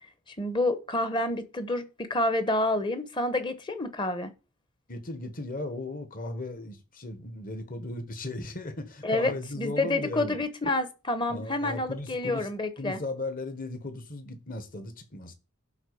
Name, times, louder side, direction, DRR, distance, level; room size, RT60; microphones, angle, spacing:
voice 1, 0.4-4.3 9.0-13.0, left 2 dB, 20° left, 1.0 m, -28 dB
voice 2, 4.9-10.4 11.3-12.5 12.8-15.3, left 2 dB, 40° left, 1.5 m, -36 dB
11.5 x 4.1 x 6.9 m
head